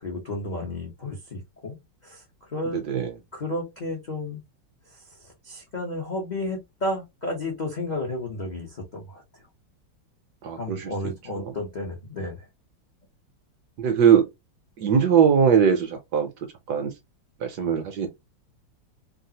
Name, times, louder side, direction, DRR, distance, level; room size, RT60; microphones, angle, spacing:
voice 1, 0.0-1.8 2.0-2.8 3.3-4.4 4.9-9.5 10.6-12.5, left 1 dB, 65° left, 0.4 m, -32 dB
voice 2, 2.7-3.1 10.4-10.9 13.8-14.3 14.8-16.9 17.4-18.1, right 7 dB, 70° right, 1.1 m, -21 dB
3.2 x 2.4 x 2.7 m
omnidirectional pair, 2.1 m